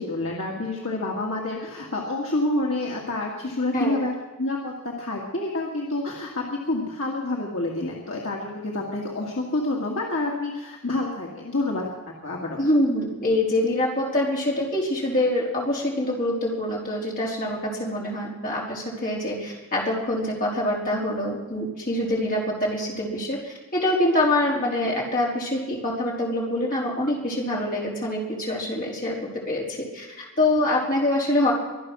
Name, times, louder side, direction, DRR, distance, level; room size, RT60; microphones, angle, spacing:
voice 1, 0.0-4.7 5.0-11.9 12.2-12.7, left 2 dB, 65° left, -2 dB, 2.3 m, -28 dB
voice 2, 12.6-31.5, left 1 dB, 40° left, -4 dB, 4.3 m, -25 dB
24.0 x 8.8 x 6.4 m, 1.2 s
head